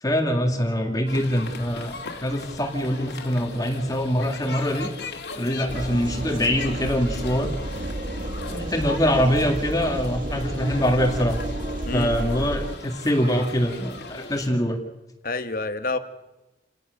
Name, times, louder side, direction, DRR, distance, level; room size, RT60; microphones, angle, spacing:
voice 1, 0.0-4.9 5.3-7.5 8.5-11.4 11.9-14.8, equal, 20° left, 4 dB, 2.2 m, -24 dB
sound 1, 1.1-14.5, left 3 dB, 70° left, 2.7 m, -38 dB
sound 2, 5.7-12.7, right 1 dB, 45° right, 1.6 m, -31 dB
voice 2, 15.2-16.0, left 3 dB, 50° left, 10 dB, 1.3 m, -27 dB
28.5 x 19.0 x 6.5 m, 1.0 s
head